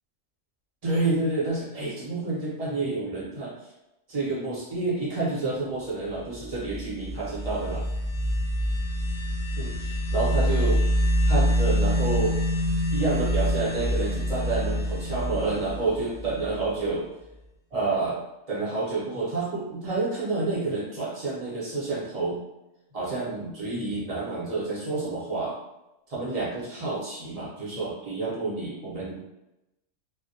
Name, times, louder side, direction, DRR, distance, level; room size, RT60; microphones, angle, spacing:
voice 1, 0.8-3.5 4.1-7.8 9.6-10.8 11.3-12.4 12.9-17.1 17.7-18.2 18.5-22.4 22.9-25.6 26.1-29.2, right 3 dB, 35° right, -7 dB, 0.7 m, -29 dB
sound 1, 6.3-16.9, equal, 50° left, 0.7 m, -26 dB
2.1 x 2.1 x 2.7 m, 0.93 s
omnidirectional pair, 1.3 m